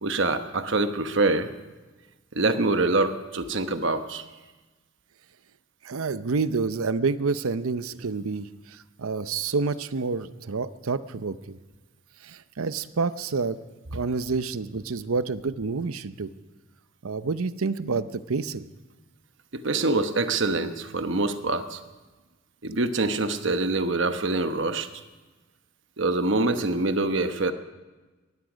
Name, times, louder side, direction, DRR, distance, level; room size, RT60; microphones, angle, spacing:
voice 1, 0.0-1.5 2.3-4.2 19.5-21.8 22.6-24.9 26.0-27.5, right 2 dB, 55° right, 9 dB, 1.0 m, -25 dB
voice 2, 5.8-11.6 12.2-13.6 13.9-16.3 17.0-18.6, right 4 dB, 80° right, 13 dB, 0.7 m, -28 dB
19.0 x 14.5 x 5.1 m, 1.2 s
head